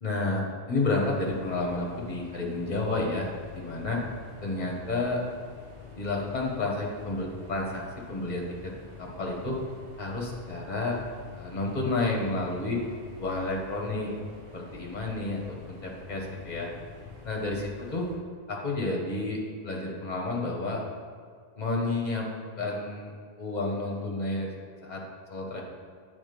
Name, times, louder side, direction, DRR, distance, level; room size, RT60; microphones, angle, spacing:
voice 1, 0.0-4.0 4.4-5.2 5.9-8.7 9.0-9.6 10.0-11.0 11.3-12.8 13.2-14.1 14.5-15.4 15.7-16.7 17.2-18.1 18.5-20.8 21.6-22.3 22.6-23.1 23.4-24.5 24.8-25.0 25.3-25.6, left 2 dB, 45° left, -1 dB, 1.3 m, -30 dB
sound 1, 1.0-18.2, left 5 dB, 65° right, 2.0 m, -47 dB
8.5 x 3.7 x 5.2 m, 2.1 s
omnidirectional pair, 1.0 m